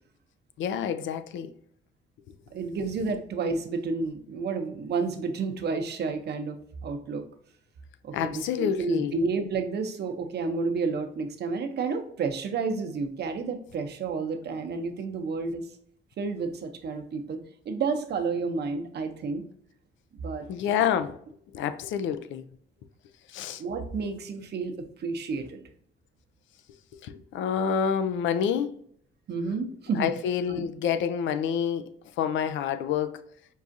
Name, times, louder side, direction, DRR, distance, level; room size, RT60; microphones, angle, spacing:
voice 1, 0.6-1.5 8.1-9.1 20.5-21.2 21.5-22.4 23.3-23.6 27.0-28.7 30.0-31.9 32.2-33.2, left 8 dB, 75° left, 0.4 m, -28 dB
voice 2, 2.5-7.2 8.0-15.7 16.2-19.4 20.1-20.8 23.6-25.6 29.3-30.1 30.5-30.7, right 4 dB, 55° right, 0.7 m, -31 dB
5.4 x 2.4 x 2.6 m
cardioid pair, 90°, 20 cm